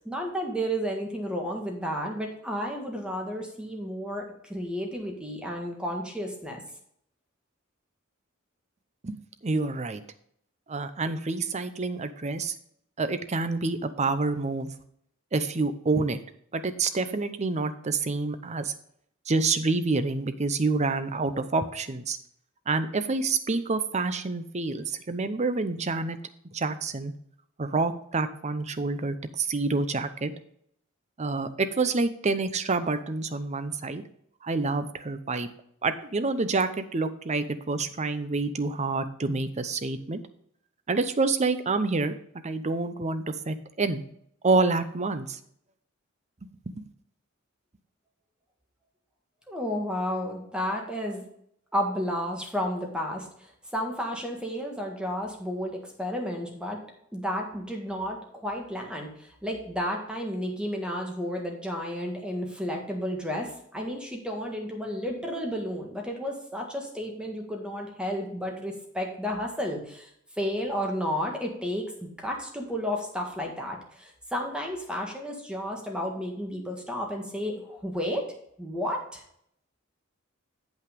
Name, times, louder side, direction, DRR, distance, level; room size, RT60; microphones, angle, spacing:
voice 1, 0.1-6.6 49.5-51.2 51.7-56.8 57.1-70.1 70.4-78.2 78.6-79.2, equal, 5° right, 1 dB, 1.8 m, -32 dB
voice 2, 9.4-10.0 10.7-12.5 13.0-14.7 15.3-16.2 16.5-18.7 19.3-22.2 22.7-26.2 26.5-27.1 27.6-30.3 31.2-34.0 34.4-35.5 35.8-40.2 40.9-42.1 42.4-44.0 44.4-45.4 46.4-46.7, right 3 dB, 35° right, 11 dB, 0.7 m, -27 dB
8.0 x 5.7 x 5.2 m, 0.69 s
head